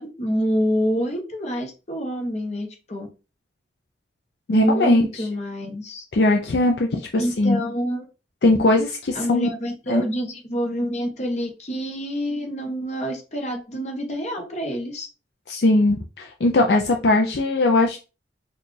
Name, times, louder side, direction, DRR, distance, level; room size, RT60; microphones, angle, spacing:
voice 1, 0.0-3.1 4.5-6.0 7.2-8.0 9.1-15.1, equal, 40° left, 3 dB, 1.0 m, -27 dB
voice 2, 4.5-5.3 6.1-7.6 8.4-9.5 9.9-10.0 15.5-18.0, left 2 dB, 65° left, 2 dB, 0.5 m, -20 dB
4.4 x 2.3 x 3.2 m, 0.31 s
head